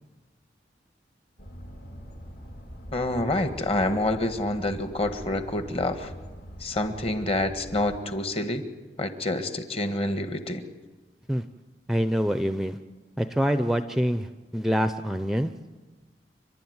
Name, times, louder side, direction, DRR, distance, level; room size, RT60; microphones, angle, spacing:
sound 1, 1.4-8.0, equal, 60° left, 3.2 m, -43 dB
voice 1, 2.9-6.1 6.6-8.6 9.0-10.6, left 1 dB, 35° left, 8 dB, 1.6 m, -27 dB
voice 2, 11.9-12.8 13.2-15.5, equal, ahead, 10 dB, 0.6 m, -25 dB
30.0 x 11.5 x 9.5 m, 1.3 s
head